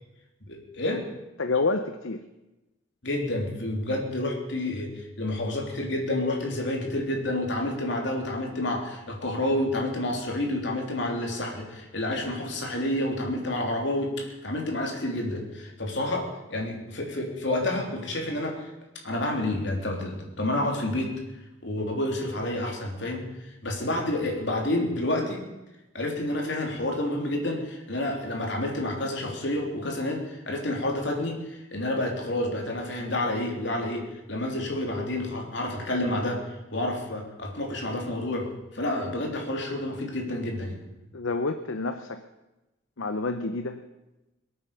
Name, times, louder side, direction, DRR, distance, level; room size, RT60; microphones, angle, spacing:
voice 1, 0.5-1.0 3.0-18.7 19.0-21.1 21.6-25.4 25.9-38.5 38.7-40.8, left 1 dB, 60° left, 1 dB, 3.4 m, -29 dB
voice 2, 1.4-2.3 41.1-42.2 43.0-43.8, left 3 dB, 80° left, 8 dB, 0.8 m, -28 dB
21.5 x 8.9 x 6.9 m, 1.0 s
head